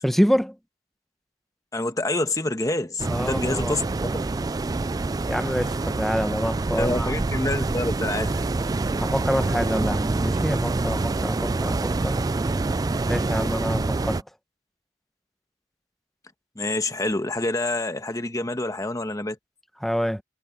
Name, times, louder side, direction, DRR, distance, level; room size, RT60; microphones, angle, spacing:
voice 1, 0.0-0.6 3.0-3.8 5.3-7.1 9.0-12.2 13.1-14.2 19.8-20.2, equal, ahead, 1.0 m, -26 dB
voice 2, 1.7-3.8 6.8-8.4 16.5-19.4, left 2 dB, 20° left, 1.3 m, -27 dB
sound 1, 3.0-14.2, right 3 dB, 20° right, 0.3 m, -26 dB
head